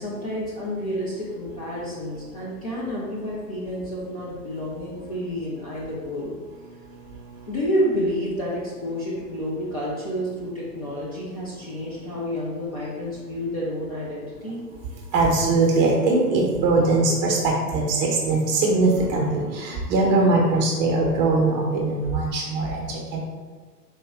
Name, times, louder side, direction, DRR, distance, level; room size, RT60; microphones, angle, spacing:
voice 1, 0.0-6.4 7.5-14.6, equal, 25° left, -7 dB, 0.4 m, -29 dB
voice 2, 15.1-22.9 23.1-23.2, right 3 dB, 25° right, -1 dB, 0.8 m, -21 dB
4.3 x 2.8 x 3.5 m, 1.5 s
figure-of-eight pair, 120°, 50 cm